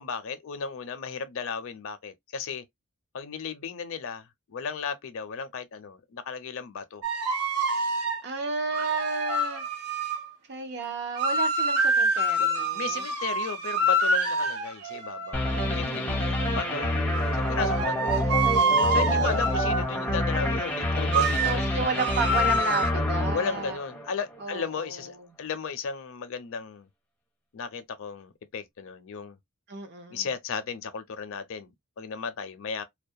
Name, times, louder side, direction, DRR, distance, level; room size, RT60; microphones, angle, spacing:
voice 1, 0.0-2.6 3.1-7.0 12.4-16.9 17.3-18.2 18.9-22.0 23.3-26.9 27.5-29.4 30.1-32.8, left 5 dB, 60° left, 0.5 m, -35 dB
sound 1, 7.0-8.2 8.7-10.3 11.2-15.8 16.4-19.9 21.1-21.6 22.0-22.9, right 1 dB, 90° right, 0.6 m, -26 dB
voice 2, 8.2-9.6 10.5-13.0 15.5-17.2 18.0-19.1 21.4-23.8 24.4-25.3 29.7-30.3, right 4 dB, 50° right, 0.6 m, -33 dB
sound 2, 15.3-24.4, left 1 dB, 5° left, 0.4 m, -28 dB
2.2 x 2.1 x 2.6 m
head